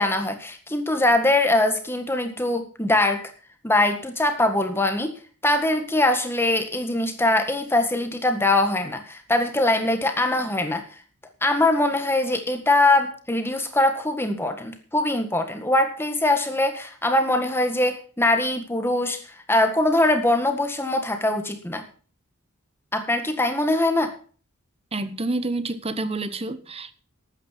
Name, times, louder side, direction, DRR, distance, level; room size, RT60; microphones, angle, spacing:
voice 1, 0.0-3.2 3.6-5.2 5.4-10.8 11.4-19.2 19.5-21.8 22.9-24.1, left 2 dB, 10° left, 1.7 m, -22 dB
voice 2, 24.9-26.9, right 2 dB, 25° right, 0.9 m, -28 dB
13.0 x 9.0 x 5.8 m
head